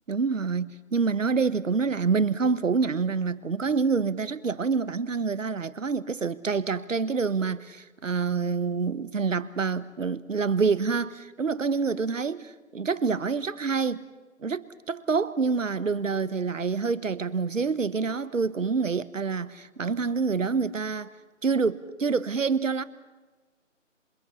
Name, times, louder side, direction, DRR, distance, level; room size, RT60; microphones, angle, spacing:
voice 1, 0.1-14.0 14.4-21.1 21.4-22.8, right 5 dB, 70° right, 1.4 m, -27 dB
27.5 x 24.5 x 5.7 m
figure-of-eight pair, 160°, 39 cm